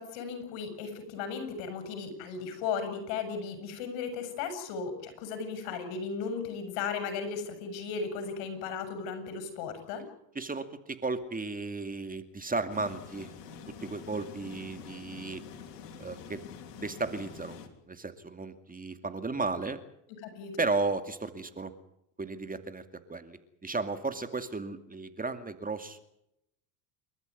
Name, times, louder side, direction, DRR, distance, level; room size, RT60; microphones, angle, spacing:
voice 1, 0.0-10.0 20.2-20.7, left 5 dB, 70° left, 9 dB, 7.3 m, -36 dB
voice 2, 10.3-13.3 13.7-15.4 16.0-16.4 16.7-17.6 17.9-19.8 20.6-21.7 22.2-22.8 23.1-26.0, right 3 dB, 20° right, 9 dB, 2.4 m, -34 dB
sound 1, 12.7-17.7, left 7 dB, 90° left, 3.3 m, -46 dB
29.5 x 13.5 x 9.7 m, 0.80 s
supercardioid pair, 85°, 47 cm